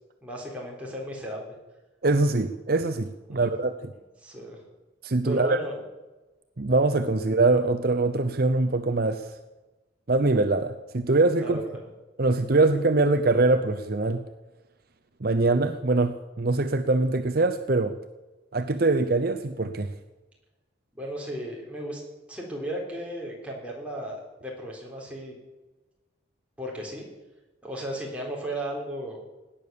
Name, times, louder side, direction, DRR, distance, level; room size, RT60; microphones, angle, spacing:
voice 1, 0.2-1.5 3.3-3.5 4.2-4.6 5.2-5.8 11.4-11.8 20.9-22.0 22.3-25.4 26.6-27.1 27.6-29.2, right 1 dB, 5° right, -2 dB, 3.8 m, -35 dB
voice 2, 2.0-3.7 5.0-5.6 6.6-9.3 10.1-11.6 12.2-14.2 15.2-18.0 18.5-19.9, right 2 dB, 50° right, 8 dB, 0.7 m, -23 dB
17.5 x 10.0 x 7.0 m, 1.1 s
head